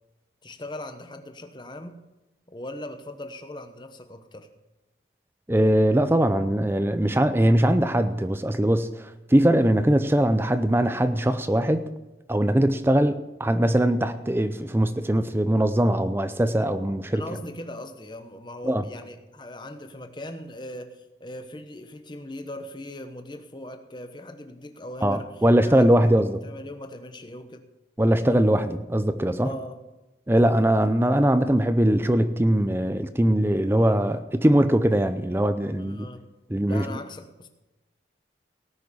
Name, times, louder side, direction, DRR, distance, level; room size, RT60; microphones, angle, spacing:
voice 1, 0.4-2.0 2.5-4.5 17.1-27.7 29.4-29.8 35.8-36.3 36.7-37.5, left 1 dB, 25° left, 6 dB, 1.0 m, -39 dB
voice 2, 5.5-11.9 12.3-17.2 18.6-18.8 25.0-26.4 28.0-29.5 30.3-36.1 36.5-36.9, right 1 dB, 15° right, 11 dB, 0.5 m, -21 dB
18.0 x 6.4 x 7.1 m, 1.0 s
head